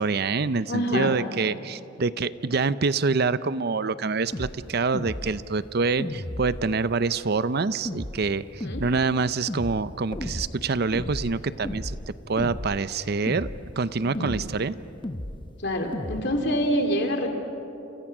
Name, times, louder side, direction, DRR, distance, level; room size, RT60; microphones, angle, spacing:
voice 1, 0.0-12.0 12.3-13.5 13.8-14.7, right 4 dB, 55° right, 15 dB, 0.6 m, -26 dB
voice 2, 0.7-1.1 8.6-8.8 14.0-14.3 15.6-17.3, equal, 60° left, 3 dB, 3.2 m, -26 dB
sound 1, 4.3-4.5 4.9-5.4 6.0-6.7 7.9-8.2 8.6-8.9 9.5-9.8 10.1-10.5 10.9-11.4 11.6-12.1 12.4-12.8 13.3-13.6 14.1-14.5 15.0-15.4 15.9-16.2, left 1 dB, 25° left, 1.0 m, -33 dB
29.0 x 28.5 x 6.1 m, 2.9 s
head